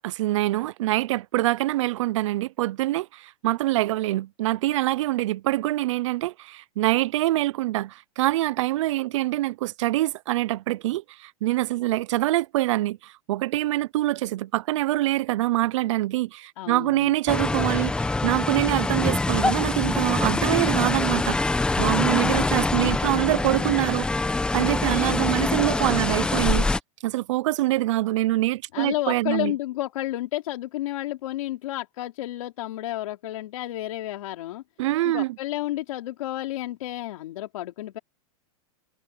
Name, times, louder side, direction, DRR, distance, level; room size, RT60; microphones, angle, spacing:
voice 1, 0.0-24.1 24.5-26.7 27.0-29.5 34.8-35.4, right 16 dB, 55° right, 0.6 m, -25 dB
voice 2, 16.6-17.1 28.7-34.6 35.0-38.0, left 15 dB, 65° left, 3.3 m, -31 dB
sound 1, 17.3-26.8, left 3 dB, 5° left, 1.1 m, -24 dB
supercardioid pair, 160°, 19 cm